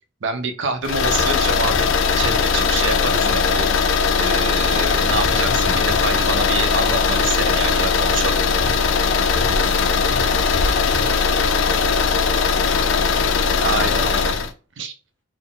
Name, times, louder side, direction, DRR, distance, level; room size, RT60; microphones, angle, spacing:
voice 1, 0.2-3.7 4.2-8.4 13.6-14.4 14.8-14.9, right 3 dB, 65° right, 7 dB, 0.6 m, -26 dB
sound 1, 0.8-14.5, left 5 dB, 65° left, 0.4 m, -19 dB
sound 2, 1.2-1.3 1.7-1.9 2.2-2.6 5.0-6.5 6.8-6.9 8.6-12.3 12.5-12.7, left 2 dB, 50° left, 0.8 m, -34 dB
voice 2, 9.2-14.1, left 2 dB, 10° left, -3 dB, 1.3 m, -38 dB
4.1 x 2.1 x 3.7 m, 0.36 s
head